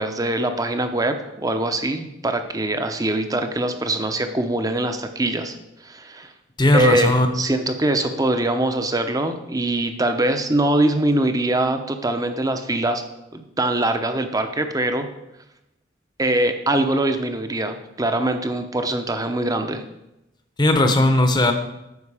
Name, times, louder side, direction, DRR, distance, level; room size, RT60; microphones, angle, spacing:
voice 1, 0.0-5.6 5.8-6.3 6.7-13.0 13.3-15.1 16.2-19.8, right 1 dB, 20° right, 7 dB, 0.7 m, -23 dB
voice 2, 6.6-7.3 20.6-21.5, left 1 dB, 25° left, 7 dB, 0.9 m, -17 dB
9.6 x 6.4 x 4.9 m, 0.89 s
head